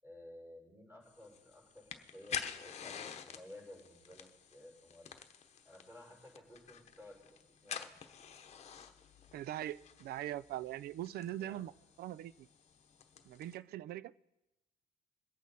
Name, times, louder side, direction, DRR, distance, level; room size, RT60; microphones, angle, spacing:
voice 1, 0.0-2.9 3.2-5.2 5.6-8.0 11.4-11.7, left 1 dB, 15° right, -1 dB, 5.8 m, -55 dB
sound 1, 1.1-13.6, left 7 dB, 40° left, 1.0 m, -49 dB
voice 2, 9.3-11.7 12.0-12.5 13.3-14.1, right 13 dB, 70° right, 19 dB, 0.5 m, -41 dB
22.5 x 8.2 x 4.2 m, 0.97 s
cardioid pair, 110°, 17 cm